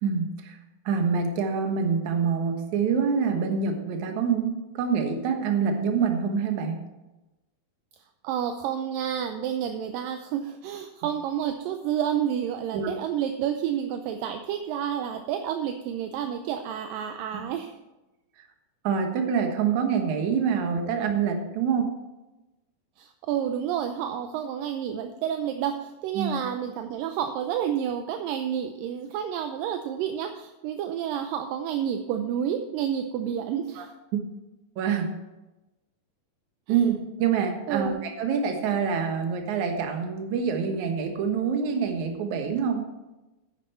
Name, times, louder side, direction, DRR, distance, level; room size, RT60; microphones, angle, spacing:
voice 1, 0.0-0.6 0.9-6.8 12.7-13.0 17.3-17.4 18.8-21.9 26.1-26.3 33.8-33.9 34.1-34.2 34.8-35.1 36.7-42.9, right 6 dB, 60° right, 4 dB, 2.3 m, -26 dB
voice 2, 8.2-17.7 23.0-33.9 36.7-36.8 37.7-38.0, right 9 dB, 80° right, 6 dB, 2.2 m, -30 dB
10.0 x 9.1 x 4.2 m, 1.0 s
omnidirectional pair, 4.3 m